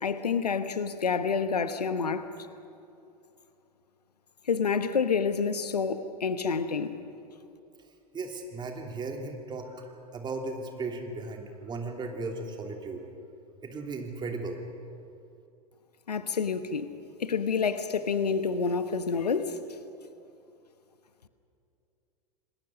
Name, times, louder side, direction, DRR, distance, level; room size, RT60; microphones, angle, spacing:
voice 1, 0.0-2.3 4.5-7.0 16.1-16.9 17.2-19.6, left 5 dB, 75° left, 11 dB, 1.1 m, -28 dB
voice 2, 8.1-13.0 13.6-14.6, right 3 dB, 20° right, 3 dB, 3.0 m, -36 dB
28.5 x 20.0 x 6.5 m, 2.7 s
figure-of-eight pair, 90°, 20 cm